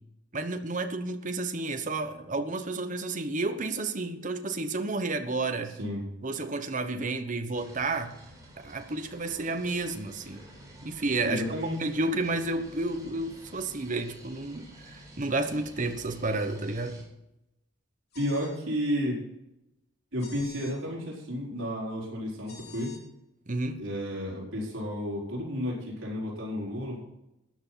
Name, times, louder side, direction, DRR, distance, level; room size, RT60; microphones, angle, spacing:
voice 1, 0.3-5.7 6.2-8.1 8.6-10.4 10.8-11.4 11.8-17.0 23.5-23.8, right 2 dB, 40° right, 8 dB, 1.2 m, -31 dB
sound 1, 7.5-17.0, right 1 dB, 20° right, 4.2 m, -50 dB
voice 2, 11.3-11.8 18.1-19.2 20.1-22.9 23.8-27.0, equal, 80° right, -4 dB, 4.5 m, -32 dB
sound 2, 18.1-18.6 20.2-20.7 22.5-23.0, left 5 dB, 55° left, 3.4 m, -48 dB
13.5 x 9.7 x 5.8 m, 0.87 s
head